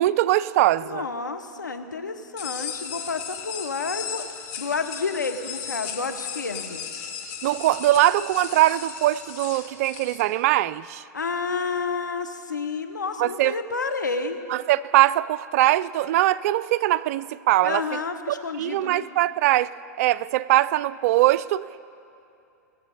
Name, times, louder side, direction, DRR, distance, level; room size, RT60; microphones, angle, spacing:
voice 1, 0.0-1.0 7.4-11.0 13.2-13.6 14.5-17.8 18.6-19.7 20.0-21.8, right 15 dB, 55° right, 17 dB, 0.4 m, -21 dB
voice 2, 0.8-4.3 4.6-6.9 11.1-14.4 17.6-19.1, left 4 dB, 90° left, 7 dB, 0.9 m, -30 dB
sound 1, 2.4-10.2, left 7 dB, 50° left, 1.5 m, -36 dB
19.0 x 7.2 x 5.4 m, 2.6 s
hypercardioid pair, 105°, 10 cm